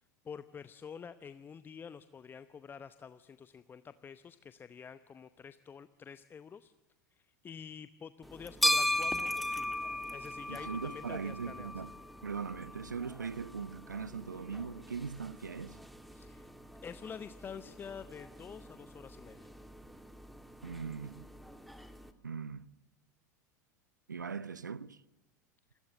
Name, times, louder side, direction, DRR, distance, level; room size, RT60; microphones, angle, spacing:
voice 1, 0.2-6.7 7.1-9.7 10.1-11.7 16.1-16.5 16.8-19.5, left 6 dB, 20° left, 0.8 m, -48 dB
sound 1, 8.2-22.1, left 1 dB, ahead, 1.9 m, -38 dB
voice 2, 10.5-11.9 12.2-15.8 20.6-21.3 22.2-22.7 24.1-25.0, right 5 dB, 80° right, 0.8 m, -40 dB
28.0 x 21.5 x 7.9 m
figure-of-eight pair, 80°, 10 cm